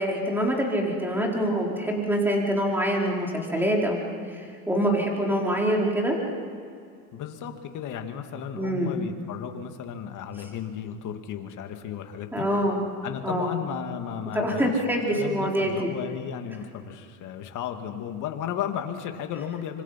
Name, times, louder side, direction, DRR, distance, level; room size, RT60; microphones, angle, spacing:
voice 1, 0.0-6.2 8.6-8.9 12.3-12.8 13.2-13.5 14.3-15.9, equal, 5° right, -1 dB, 4.7 m, -25 dB
voice 2, 7.1-12.5 13.0-14.8 15.1-19.8, left 9 dB, 45° left, 6 dB, 2.3 m, -34 dB
26.0 x 25.5 x 5.9 m, 2.3 s
supercardioid pair, 120°, 44 cm